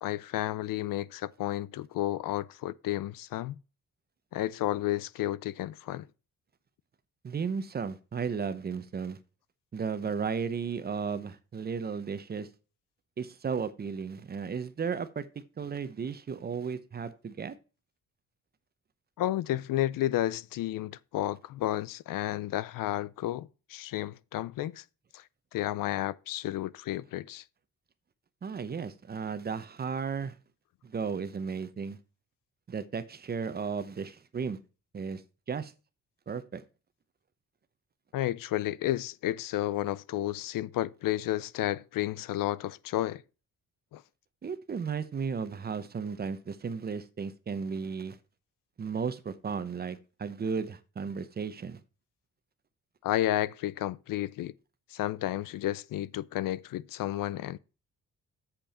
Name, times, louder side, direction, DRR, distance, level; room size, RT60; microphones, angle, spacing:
voice 1, 0.0-3.6 4.3-6.1 19.2-24.8 25.1-25.2 25.5-27.4 38.1-43.2 43.9-44.0 53.0-54.5 54.9-57.6, left 14 dB, 80° left, 0.5 m, -32 dB
voice 2, 7.2-9.2 9.7-12.5 13.2-15.2 15.6-17.5 28.4-30.4 30.8-32.0 32.7-34.6 34.9-35.2 35.5-35.7 36.3-36.6 44.4-48.2 48.8-51.8, right 6 dB, 30° right, 0.8 m, -34 dB
8.0 x 7.0 x 4.2 m
cardioid pair, 165°, 33 cm